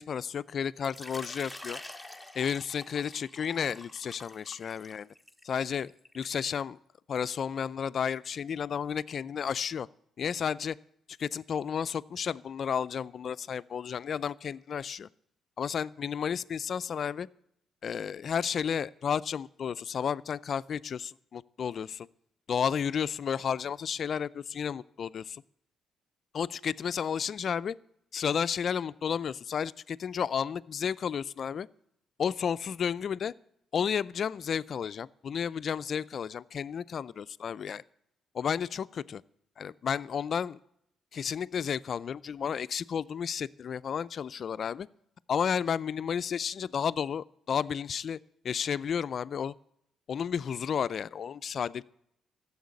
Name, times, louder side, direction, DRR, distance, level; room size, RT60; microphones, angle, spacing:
voice 1, 0.0-1.8 2.3-5.1 5.4-6.8 7.1-9.9 10.2-10.8 11.2-15.1 15.6-17.3 17.8-22.1 22.5-25.4 26.3-27.8 28.1-31.7 32.2-33.3 33.7-37.8 38.3-39.2 39.6-40.6 41.1-44.9 45.3-48.2 48.4-49.5 50.1-51.8, left 7 dB, 55° left, 17 dB, 0.4 m, -32 dB
Water / Liquid, 0.8-6.4, left 1 dB, ahead, 1.2 m, -47 dB
14.5 x 7.2 x 9.6 m, 0.75 s
cardioid pair, 90°, 0 cm